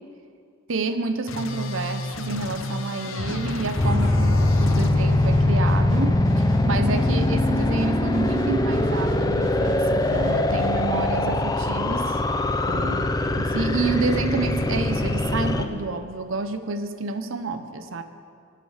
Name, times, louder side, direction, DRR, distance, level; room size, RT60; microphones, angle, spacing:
voice 1, 0.7-12.2 12.7-13.0 13.3-18.0, right 3 dB, 70° right, 9 dB, 0.8 m, -29 dB
sound 1, 1.3-4.9, left 1 dB, 70° left, 0.8 m, -31 dB
sound 2, 3.2-10.7, right 1 dB, 35° right, 3.5 m, -38 dB
sound 3, 3.8-15.7, left 1 dB, 20° left, 0.5 m, -22 dB
19.0 x 6.8 x 4.9 m, 2.3 s
head